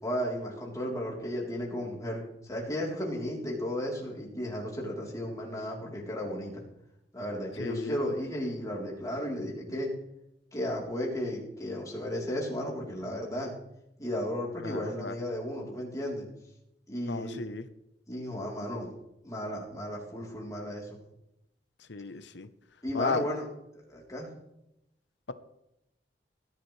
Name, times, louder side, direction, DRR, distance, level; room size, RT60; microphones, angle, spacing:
voice 1, 0.0-6.6 7.1-9.9 10.5-13.5 14.0-16.2 16.9-17.5 18.1-18.9 19.2-21.0 22.8-23.5 23.9-24.3, equal, 20° left, -3 dB, 3.6 m, -34 dB
voice 2, 7.6-7.9 14.6-15.1 17.0-17.6 21.9-22.5 22.9-23.2, left 4 dB, 90° left, 11 dB, 0.9 m, -34 dB
17.5 x 11.0 x 3.3 m, 0.83 s
head